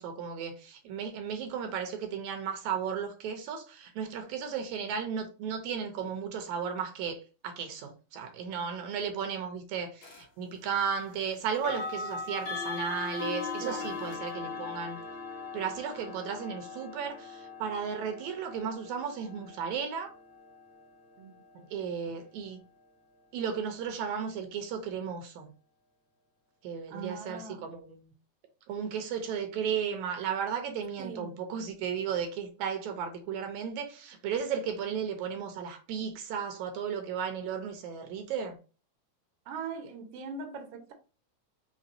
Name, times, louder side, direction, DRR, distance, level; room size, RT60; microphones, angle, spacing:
voice 1, 0.0-15.0 15.5-20.1 21.7-22.6 23.3-25.5 26.6-28.1 28.7-38.6, right 7 dB, 80° right, 2.2 m, -35 dB
sound 1, 10.0-10.2 11.5-22.4, left 4 dB, 55° left, 1.9 m, -40 dB
voice 2, 13.6-13.9 21.2-22.2 26.9-27.7 31.0-31.4 39.4-40.9, right 5 dB, 65° right, 1.7 m, -41 dB
5.2 x 3.3 x 2.7 m
omnidirectional pair, 3.4 m